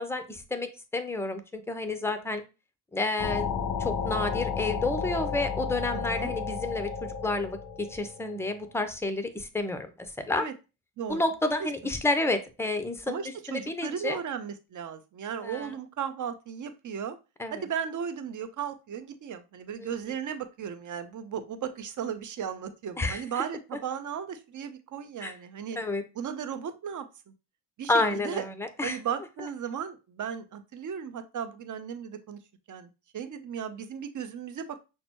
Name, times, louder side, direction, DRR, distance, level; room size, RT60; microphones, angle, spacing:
voice 1, 0.0-2.4 2.9-3.5 3.8-9.9 10.3-10.5 11.1-13.2 13.5-14.2 15.4-15.7 17.4-17.6 19.8-19.9 23.0-23.2 25.2-25.3 25.8-26.0 27.9-29.0, left 2 dB, 5° left, 9 dB, 0.6 m, -30 dB
sound 1, 3.2-8.6, left 6 dB, 40° left, 1.0 m, -32 dB
voice 2, 5.9-6.3 10.4-10.5 11.0-11.2 11.6-11.7 13.1-17.2 17.5-25.8 26.1-27.1 27.8-28.4 28.8-32.4 32.7-34.8, right 8 dB, 40° right, 10 dB, 0.7 m, -36 dB
6.0 x 2.2 x 2.9 m, 0.29 s
supercardioid pair, 70°, 47 cm